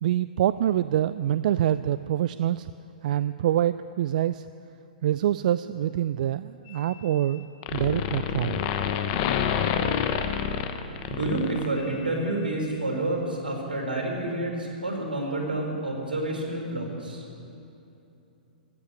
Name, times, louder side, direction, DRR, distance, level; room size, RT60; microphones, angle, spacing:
voice 1, 0.0-2.7 3.0-4.5 5.0-7.4 7.7-8.6, right 11 dB, 60° right, 14 dB, 0.3 m, -25 dB
sound 1, 6.7-7.4 7.6-12.1, left 8 dB, 45° left, 1.1 m, -28 dB
voice 2, 11.1-17.2, right 2 dB, 85° right, -1 dB, 4.6 m, -29 dB
15.0 x 8.3 x 9.8 m, 2.8 s
hypercardioid pair, 115°, 5 cm